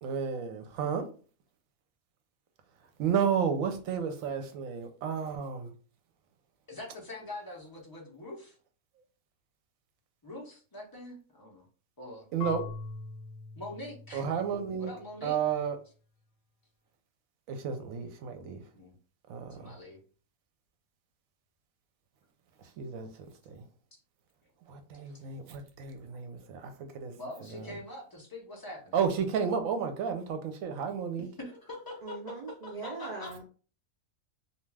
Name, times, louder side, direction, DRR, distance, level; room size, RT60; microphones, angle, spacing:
voice 1, 0.0-1.0 3.0-5.7 12.3-12.6 14.1-14.9 15.2-15.8 17.5-18.6 19.3-19.8 22.6-23.6 24.7-27.1 27.4-27.8 28.9-31.3, right 7 dB, 80° right, 1.0 m, -32 dB
voice 2, 6.7-8.5 10.2-11.7 12.0-12.3 13.6-14.2 14.8-15.4 18.7-18.9 19.5-20.0 27.2-28.9 31.4-32.2 32.6-33.4, left 1 dB, 30° left, 0.4 m, -43 dB
Marimba xylophone / Wood, 12.4-15.3, left 5 dB, 65° left, 0.9 m, -43 dB
voice 3, 32.0-33.4, right 3 dB, 65° right, 0.4 m, -40 dB
2.4 x 2.3 x 3.2 m
omnidirectional pair, 1.4 m